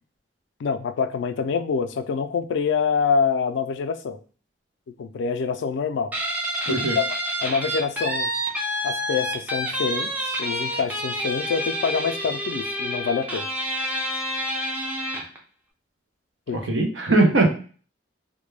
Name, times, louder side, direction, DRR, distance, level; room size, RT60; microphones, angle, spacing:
voice 1, 0.6-4.2 5.0-6.1 6.7-7.0 7.4-8.3 8.8-10.1 10.4-13.5 16.5-16.6, left 5 dB, 70° left, 9 dB, 0.3 m, -25 dB
Guitar, 6.1-15.4, equal, 10° right, 0.4 m, -28 dB
voice 2, 6.7-7.0 16.5-17.5, right 2 dB, 75° right, 3 dB, 0.6 m, -20 dB
2.2 x 2.1 x 3.1 m, 0.40 s
head